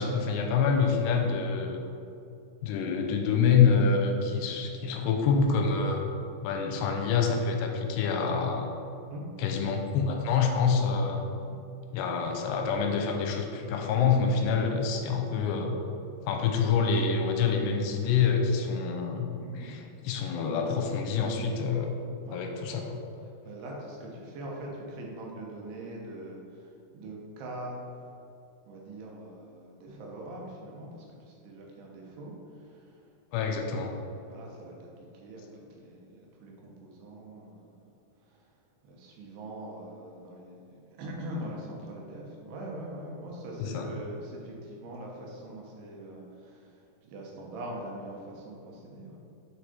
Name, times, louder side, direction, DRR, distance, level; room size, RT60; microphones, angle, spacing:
voice 1, 0.0-1.8 2.6-6.0 6.4-8.7 9.4-11.2 11.9-15.7 16.3-19.3 19.5-21.9 22.3-23.0 33.3-33.9 43.6-43.9, left 5 dB, 90° left, 3 dB, 2.8 m, -26 dB
voice 2, 19.4-19.8 22.3-22.4 23.5-27.8 28.7-33.0 33.6-34.9 35.1-35.4 35.8-37.9 38.2-38.5 38.8-49.2, right 1 dB, 80° right, -2 dB, 3.0 m, -43 dB
8.7 x 4.5 x 4.3 m, 2.6 s
omnidirectional pair, 4.8 m